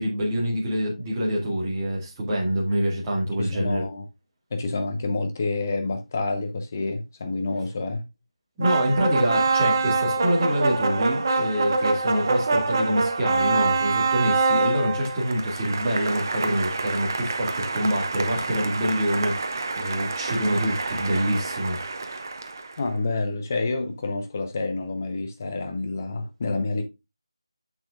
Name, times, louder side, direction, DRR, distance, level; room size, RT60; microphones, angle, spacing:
voice 1, 0.0-3.8 8.6-21.8, equal, 15° right, 2.0 m, -26 dB
voice 2, 3.4-4.0 4.5-8.1 22.8-26.8, left 3 dB, 30° left, 0.9 m, -28 dB
sound 1, 8.6-22.8, right 3 dB, 40° right, 0.9 m, -26 dB
8.6 x 6.2 x 2.5 m
figure-of-eight pair, 160°, 3 cm